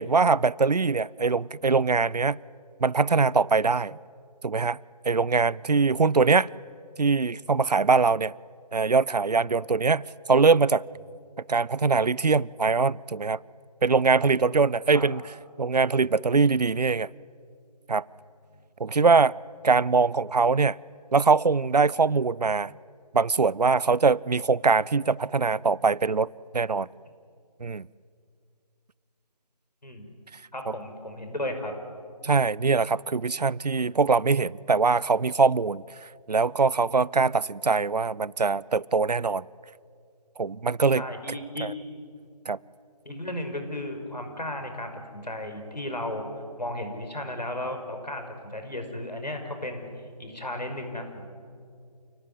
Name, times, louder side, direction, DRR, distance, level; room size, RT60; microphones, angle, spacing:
voice 1, 0.0-2.4 2.8-4.0 4.4-4.8 5.0-6.5 7.0-8.3 8.7-10.0 10.3-10.8 11.5-13.4 13.8-15.2 15.6-17.1 17.9-18.0 18.8-19.3 19.6-20.8 21.1-22.7 23.1-26.3 26.5-26.9 27.6-27.9 32.2-35.8 36.3-39.4 40.4-41.0 41.6-41.7 42.5-42.6, right 4 dB, 75° right, 0.6 m, -22 dB
voice 2, 30.5-31.7 40.9-41.7 43.1-46.3 46.6-49.9 50.2-51.3, left 1 dB, 90° left, 5.8 m, -34 dB
28.5 x 18.0 x 9.9 m
figure-of-eight pair, 160°, 21 cm